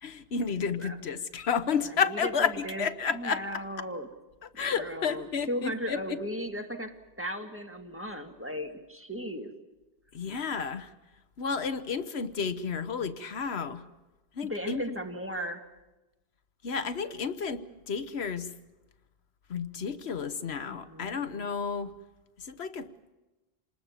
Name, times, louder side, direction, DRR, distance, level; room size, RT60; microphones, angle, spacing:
voice 1, 0.0-3.6 4.4-6.2 10.1-10.9 11.4-13.8 14.4-15.0 16.6-18.5 19.5-21.9 22.4-22.9, left 6 dB, 85° left, 12 dB, 1.3 m, -31 dB
voice 2, 1.8-2.8 3.1-4.1 4.5-9.5 14.4-15.7 20.7-21.2, equal, 10° right, 3 dB, 1.9 m, -36 dB
27.5 x 19.5 x 7.3 m, 1.1 s
omnidirectional pair, 1.0 m